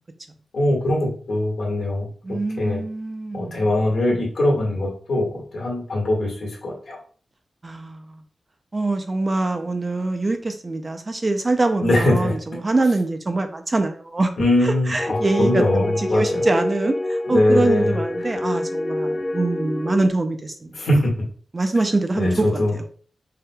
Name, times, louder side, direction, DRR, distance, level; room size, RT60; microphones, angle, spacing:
voice 1, 0.5-2.1 2.6-2.8 3.3-7.0 11.8-12.3 14.4-16.4 17.3-18.0 20.7-21.1 22.1-22.7, left 1 dB, 70° left, -2 dB, 2.0 m, -21 dB
voice 2, 2.2-3.7 7.6-8.2 8.7-14.3 14.6-20.8 21.5-23.0, right 2 dB, 30° right, 7 dB, 0.5 m, -24 dB
sound 1, 15.0-20.1, left 1 dB, 25° left, 0.4 m, -26 dB
5.6 x 3.6 x 2.3 m, 0.43 s
wide cardioid pair, 155°, 0 cm